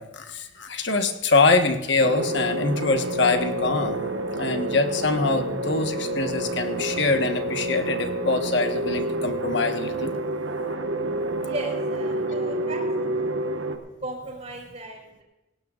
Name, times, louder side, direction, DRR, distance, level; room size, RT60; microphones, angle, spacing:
voice 1, 0.0-4.0 4.3-10.1, left 3 dB, 60° left, 6 dB, 1.4 m, -24 dB
sound 1, 2.0-13.8, right 1 dB, 80° right, 1.4 m, -28 dB
voice 2, 11.4-12.8 14.0-15.2, right 1 dB, 35° right, 0 dB, 4.9 m, -36 dB
19.0 x 17.5 x 2.5 m, 1.0 s
head